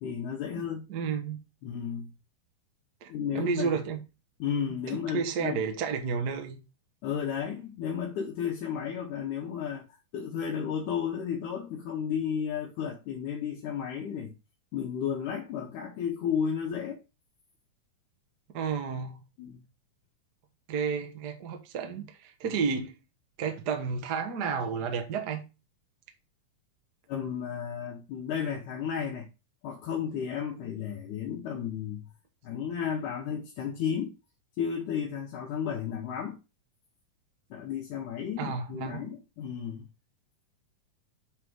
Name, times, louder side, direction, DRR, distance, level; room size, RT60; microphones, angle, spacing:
voice 1, 0.0-0.9 1.6-2.1 3.1-3.8 4.4-5.6 7.0-9.8 10.1-14.3 14.7-17.0 19.4-19.6 22.4-22.6 27.1-29.3 29.6-32.1 32.4-34.1 34.6-36.4 37.5-39.9, left 7 dB, 75° left, 2.4 m, -33 dB
voice 2, 0.9-1.4 3.0-4.0 4.9-6.6 18.5-19.2 20.7-22.9 23.4-25.4 38.4-39.0, right 6 dB, 55° right, 1.1 m, -31 dB
8.0 x 3.8 x 4.7 m
omnidirectional pair, 3.8 m